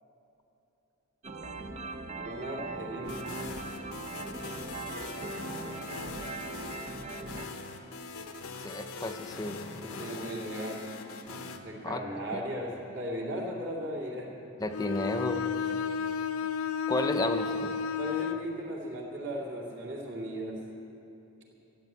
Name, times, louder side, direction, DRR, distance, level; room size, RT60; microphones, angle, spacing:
sound 1, 1.2-7.5, right 3 dB, 30° right, 0.5 m, -40 dB
voice 1, 2.2-3.4 9.8-10.8 11.6-14.3 18.0-20.6, equal, 55° right, -2 dB, 2.5 m, -37 dB
sound 2, 3.0-11.6, left 3 dB, 90° left, 1.0 m, -42 dB
voice 2, 8.6-9.6 11.8-12.0 14.6-15.4 16.9-17.7, left 2 dB, 15° left, 6 dB, 0.6 m, -32 dB
Bowed string instrument, 14.7-18.5, left 6 dB, 75° left, 0.5 m, -32 dB
13.5 x 8.8 x 8.2 m, 2.9 s
head